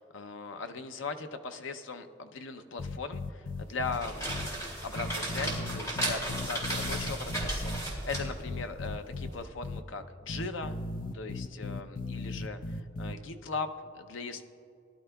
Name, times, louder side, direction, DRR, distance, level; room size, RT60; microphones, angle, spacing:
voice 1, 0.0-4.4 4.8-10.7 11.1-14.4, left 4 dB, 85° left, 8 dB, 0.6 m, -39 dB
sound 1, 2.8-4.0 4.3-4.5 5.0-7.8 8.1-9.3 9.6-9.8 10.3-13.1, left 2 dB, 45° left, 0.4 m, -37 dB
sound 2, 3.7-9.4, right 1 dB, 15° left, 2.5 m, -35 dB
19.5 x 11.5 x 2.3 m, 2.6 s
head